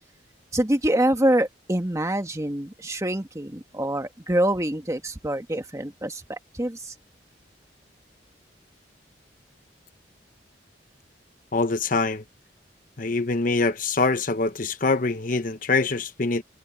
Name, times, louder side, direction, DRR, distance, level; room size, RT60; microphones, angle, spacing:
voice 1, 0.5-6.9, right 1 dB, 15° right, 1.6 m, -25 dB
voice 2, 11.5-12.2 13.0-16.4, left 3 dB, 50° left, 1.0 m, -24 dB
head